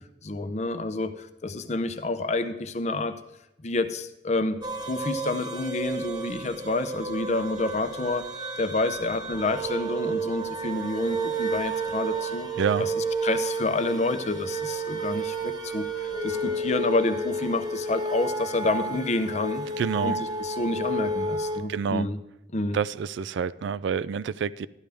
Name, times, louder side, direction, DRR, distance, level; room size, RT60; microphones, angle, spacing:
voice 1, 0.2-3.2 3.6-8.3 8.6-12.5 12.8-19.7 20.0-20.1 20.4-22.2 22.5-22.8, left 2 dB, 35° left, 0.6 m, -29 dB
sound 1, 4.6-21.6, right 2 dB, 20° right, 1.2 m, -31 dB
voice 2, 19.8-20.2 21.7-22.1 22.7-24.7, right 7 dB, 70° right, 0.3 m, -28 dB
13.0 x 10.5 x 3.4 m
head